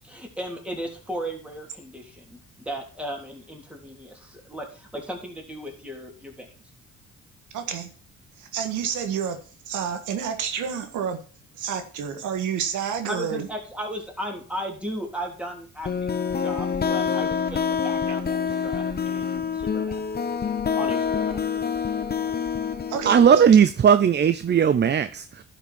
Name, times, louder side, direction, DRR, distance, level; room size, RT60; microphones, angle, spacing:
voice 1, 0.0-6.5 13.1-20.0 20.7-21.4, equal, 5° right, 3.4 m, -36 dB
voice 2, 7.5-7.9 8.4-9.4 9.7-11.2 11.5-13.5 22.9-23.5, right 7 dB, 85° right, 1.7 m, -29 dB
sound 1, 15.8-23.4, left 6 dB, 30° left, 1.0 m, -26 dB
voice 3, 23.1-25.4, right 7 dB, 35° right, 0.6 m, -17 dB
11.5 x 5.9 x 4.3 m
cardioid pair, 90°, 30 cm